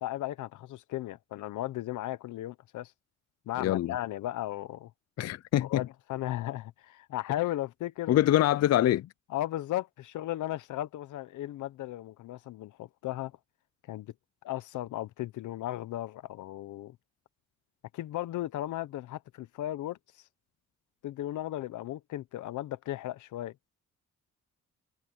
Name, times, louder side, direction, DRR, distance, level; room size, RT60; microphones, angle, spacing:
voice 1, 0.0-2.9 3.5-4.9 5.6-8.1 9.3-13.3 13.9-14.1 14.4-17.0 17.9-20.0 21.0-23.5, left 14 dB, 80° left, 1.0 m, -36 dB
voice 2, 3.6-4.0 5.2-5.8 8.1-9.1, left 13 dB, 55° left, 0.5 m, -24 dB
cardioid pair, 90°, 30 cm